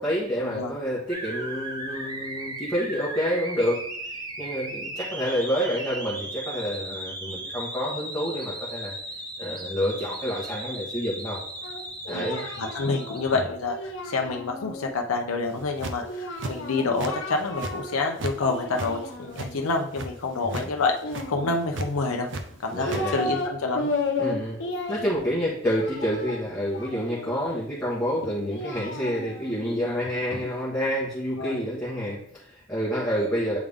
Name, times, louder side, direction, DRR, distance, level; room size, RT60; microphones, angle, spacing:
voice 1, 0.0-3.8 4.1-8.9 9.4-11.4 12.1-12.4 20.4-20.7 22.7-23.2 24.2-24.6 24.9-33.6, equal, 10° left, -8 dB, 1.2 m, -28 dB
sound 1, 1.1-13.4, right 1 dB, 20° right, 0.7 m, -36 dB
Singing, 11.6-14.9 16.0-18.0 18.3-19.6 21.0-21.9 22.5-23.5 23.7-27.4 28.2-30.4, left 2 dB, 60° left, 1.0 m, -34 dB
voice 2, 12.1-21.0 21.3-22.3 22.6-23.9 31.4-31.6, left 3 dB, 90° left, 2 dB, 0.6 m, -28 dB
sound 2, 15.5-16.1 16.4-17.1 17.4-18.4 18.6-20.1 20.4-20.7 21.0-21.3 21.7-22.4 22.7-23.0, right 2 dB, 55° right, 0.5 m, -33 dB
8.3 x 3.5 x 3.5 m, 0.70 s
head